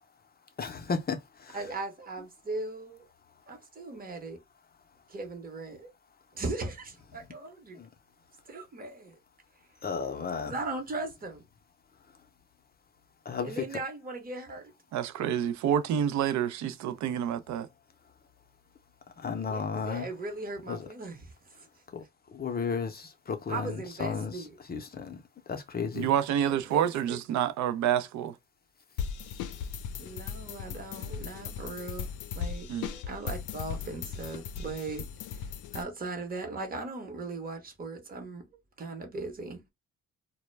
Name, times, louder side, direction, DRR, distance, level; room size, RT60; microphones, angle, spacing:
voice 1, 0.6-1.6 7.8-7.9 9.8-10.5 13.3-13.6 19.2-20.1 20.7-20.9 21.9-22.0 22.3-24.4 24.7-25.2 25.5-26.1, left 5 dB, 30° left, 0.5 m, -33 dB
voice 2, 1.5-3.1 3.5-4.4 5.1-5.9 6.3-7.8 8.5-9.2 10.4-11.4 13.4-14.7 19.4-21.7 23.5-24.6 26.5-27.2 30.0-32.1 32.3-35.0 35.3-35.4 35.7-38.4 38.8-39.6, right 3 dB, 30° right, 0.9 m, -38 dB
voice 3, 14.9-17.7 25.9-28.4 32.7-32.9, right 9 dB, 70° right, 0.5 m, -28 dB
sound 1, 29.0-35.8, left 7 dB, 80° left, 0.5 m, -38 dB
2.1 x 2.1 x 3.1 m
cardioid pair, 90°, 30 cm